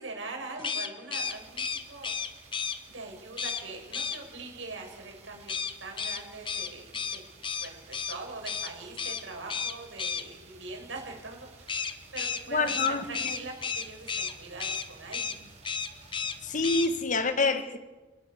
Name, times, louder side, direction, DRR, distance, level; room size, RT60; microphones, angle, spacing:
voice 1, 0.0-2.1 2.9-5.5 5.8-7.2 7.6-15.5, right 3 dB, 85° right, 7.7 m, -42 dB
sound 1, 0.6-2.8 3.4-3.6 3.9-4.2 5.5-8.2 8.5-8.7 9.0-9.2 9.5-10.2 11.7-14.3 14.6-14.9 15.1-15.4 15.6-16.4 16.6-16.9, left 6 dB, 25° left, 1.3 m, -32 dB
sound 2, 1.1-17.0, right 3 dB, 35° right, 5.9 m, -54 dB
voice 2, 12.5-13.4 16.4-17.8, left 3 dB, 40° left, 1.6 m, -27 dB
29.5 x 19.5 x 7.1 m
head